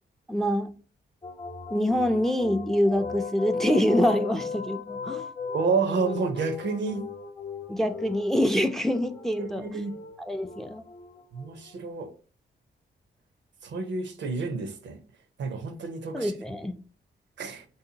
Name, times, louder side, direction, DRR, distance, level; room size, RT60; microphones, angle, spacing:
voice 1, 0.3-0.7 1.7-5.3 7.7-9.8 10.2-10.8 16.1-16.8, equal, ahead, 0.4 m, -25 dB
sound 1, 1.2-11.9, left 5 dB, 30° left, 0.9 m, -37 dB
voice 2, 5.5-7.1 9.4-10.0 11.3-12.1 13.6-15.0 15.4-16.3 17.4-17.6, right 4 dB, 65° right, 0.6 m, -29 dB
3.5 x 2.8 x 2.7 m
cardioid pair, 55°, 20 cm